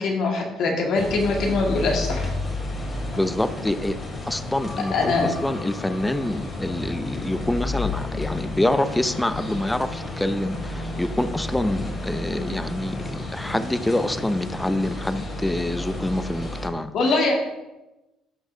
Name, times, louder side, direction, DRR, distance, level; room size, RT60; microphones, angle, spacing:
voice 1, 0.0-2.3 4.9-5.3 16.9-17.3, left 3 dB, 65° left, 0 dB, 2.0 m, -22 dB
sound 1, 0.9-16.7, left 2 dB, 30° left, 2.5 m, -31 dB
voice 2, 3.2-4.0 4.3-5.1 5.4-17.1, left 1 dB, 10° left, 11 dB, 0.6 m, -26 dB
12.5 x 5.7 x 2.8 m, 1.0 s
supercardioid pair, 65°, 0 cm